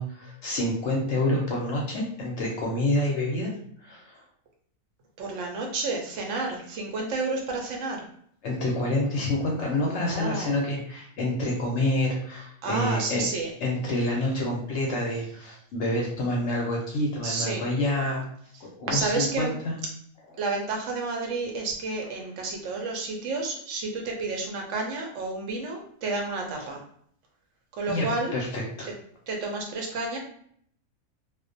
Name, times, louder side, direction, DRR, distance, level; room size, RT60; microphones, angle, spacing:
voice 1, 0.0-3.5 3.8-4.2 8.4-13.2 13.6-18.2 18.6-19.8 27.9-28.1 28.3-28.9, left 1 dB, 65° left, -2 dB, 0.7 m, -28 dB
voice 2, 5.2-8.1 9.8-10.6 12.6-13.5 17.2-17.6 18.9-19.6 20.4-26.8 27.8-28.3 28.8-28.9 29.3-30.2, right 3 dB, 65° right, 1 dB, 0.8 m, -30 dB
2.4 x 2.1 x 2.5 m, 0.63 s
omnidirectional pair, 1.5 m